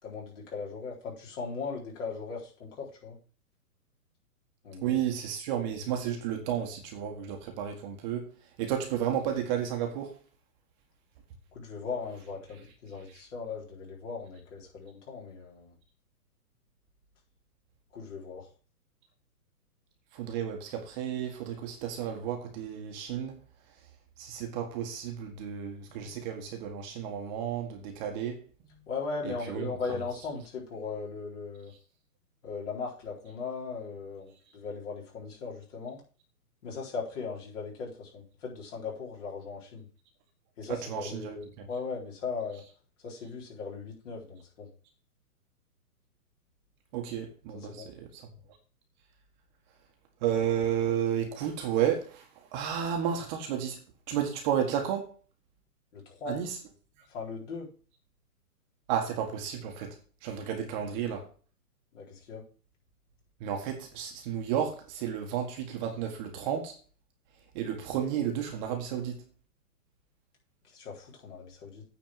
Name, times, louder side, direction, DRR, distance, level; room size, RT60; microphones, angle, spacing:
voice 1, 0.0-3.2 4.6-5.0 11.5-15.7 17.9-18.5 28.9-31.7 32.4-36.0 36.6-39.9 40.6-42.6 43.0-44.7 47.5-47.9 55.9-56.4 57.1-57.7 61.9-62.5 70.6-71.8, left 4 dB, 50° left, 4.2 m, -38 dB
voice 2, 4.8-8.3 8.6-10.1 20.1-23.4 24.2-28.8 29.2-29.7 40.7-41.3 41.6-41.7 46.9-48.3 50.2-53.8 54.1-55.1 56.2-56.6 58.9-61.3 63.4-66.7 67.5-69.2, right 9 dB, 30° right, 1.5 m, -32 dB
9.1 x 4.4 x 7.4 m
hypercardioid pair, 140°, 46 cm